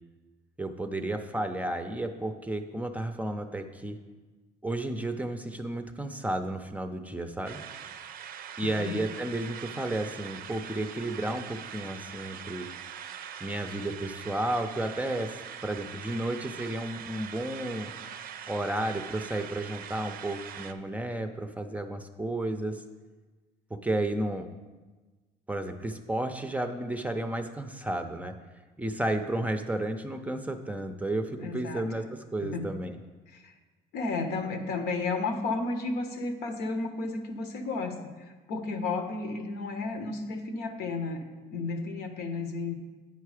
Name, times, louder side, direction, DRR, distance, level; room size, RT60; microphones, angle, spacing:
voice 1, 0.6-4.0 4.6-7.6 8.6-12.7 13.4-17.9 18.5-22.8 23.7-24.5 25.5-28.4 28.8-32.0 32.3-32.9, right 1 dB, 10° right, 7 dB, 0.5 m, -32 dB
sound 1, 7.4-20.7, right 8 dB, 60° right, 0.5 m, -42 dB
voice 2, 8.6-9.0 31.4-31.8 32.4-32.8 33.3-33.5 33.9-42.7, left 3 dB, 80° left, 6 dB, 0.9 m, -33 dB
9.6 x 4.6 x 4.9 m, 1.3 s
cardioid pair, 110°, 17 cm